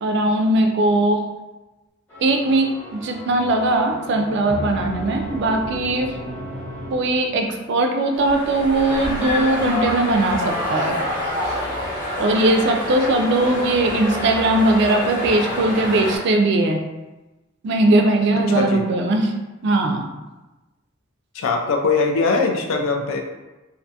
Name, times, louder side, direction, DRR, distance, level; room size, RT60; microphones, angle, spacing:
voice 1, 0.0-1.2 2.2-6.1 6.9-11.0 11.4-11.5 12.2-16.8 17.6-19.3 19.6-20.1, right 2 dB, 55° right, 4 dB, 0.3 m, -19 dB
sound 1, 2.1-7.7, right 1 dB, 10° left, 0.9 m, -34 dB
sound 2, 8.1-16.2, left 1 dB, 45° left, 0.8 m, -27 dB
voice 2, 18.5-18.8 21.3-23.2, left 4 dB, 80° left, 3 dB, 0.4 m, -21 dB
2.5 x 2.2 x 2.7 m, 1.1 s
head